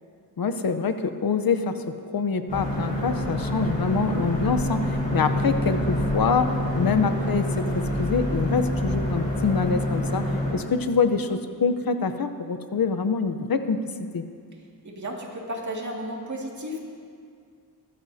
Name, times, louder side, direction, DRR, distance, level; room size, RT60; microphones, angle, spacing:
voice 1, 0.4-13.8 14.1-14.2, left 5 dB, 65° left, 9 dB, 0.8 m, -25 dB
sound 1, 2.5-10.5, left 1 dB, 20° left, 4.3 m, -26 dB
voice 2, 14.8-16.8, equal, 50° right, -2 dB, 2.3 m, -33 dB
21.5 x 14.0 x 2.8 m, 2.2 s
wide cardioid pair, 125°, 38 cm